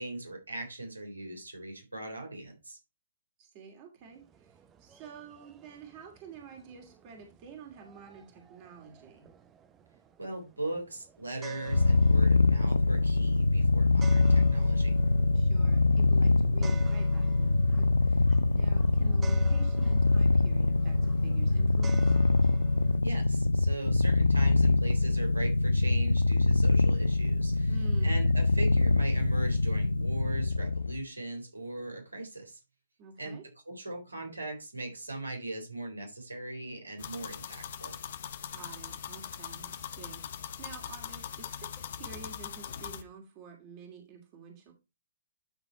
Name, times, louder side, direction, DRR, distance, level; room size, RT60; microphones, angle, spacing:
voice 1, 0.0-2.8 10.2-15.0 23.0-32.6 33.2-38.0, right 2 dB, 90° right, 3.6 m, -39 dB
voice 2, 3.4-9.3 15.3-22.2 27.7-28.1 33.0-33.4 38.5-44.7, right 5 dB, 35° right, 2.7 m, -50 dB
sound 1, 4.0-23.0, right 6 dB, 20° right, 0.9 m, -53 dB
Purr, 11.7-31.0, left 3 dB, 90° left, 0.3 m, -24 dB
sound 2, 37.0-43.0, left 8 dB, 55° left, 1.1 m, -41 dB
12.0 x 4.1 x 4.4 m
figure-of-eight pair, 125°, 0 cm